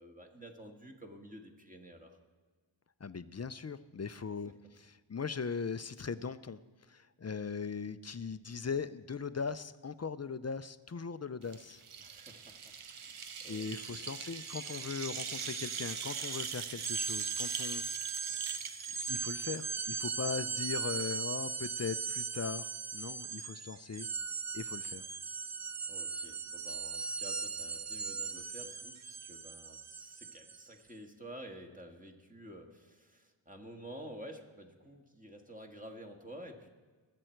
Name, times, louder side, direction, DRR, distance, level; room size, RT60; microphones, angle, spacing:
voice 1, 0.0-2.2 12.0-14.0 25.9-36.7, equal, 15° right, 3 dB, 1.8 m, -51 dB
voice 2, 3.0-6.6 6.9-11.8 13.5-17.8 19.1-24.1 24.5-25.0, left 5 dB, 35° left, 14 dB, 0.5 m, -39 dB
sound 1, 11.4-19.9, right 7 dB, 85° right, 0.8 m, -42 dB
sound 2, 13.0-13.1 13.4-30.7, right 5 dB, 35° right, 0.6 m, -39 dB
20.5 x 7.8 x 4.5 m, 1.4 s
wide cardioid pair, 50°, 49 cm